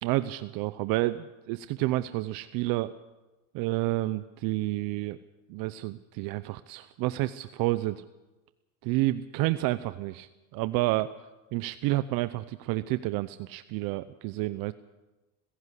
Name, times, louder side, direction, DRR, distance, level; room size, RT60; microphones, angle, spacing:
voice 1, 0.0-2.9 3.5-5.2 5.5-8.0 8.8-11.1 11.5-14.7, right 18 dB, 60° right, 14 dB, 0.8 m, -30 dB
20.5 x 16.5 x 8.3 m, 1.1 s
supercardioid pair, 125°, 38 cm